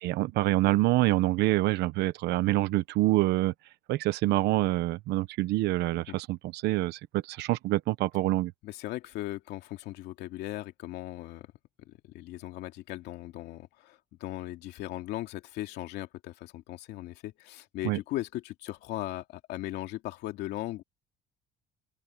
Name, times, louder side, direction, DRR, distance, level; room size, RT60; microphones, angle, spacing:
voice 1, 0.0-3.5 3.9-8.5 17.8-18.0, right 17 dB, 85° right, 1.1 m, -26 dB
voice 2, 8.6-11.5 11.8-20.8, left 16 dB, 85° left, 2.6 m, -38 dB
open air
cardioid pair, 110°, 17 cm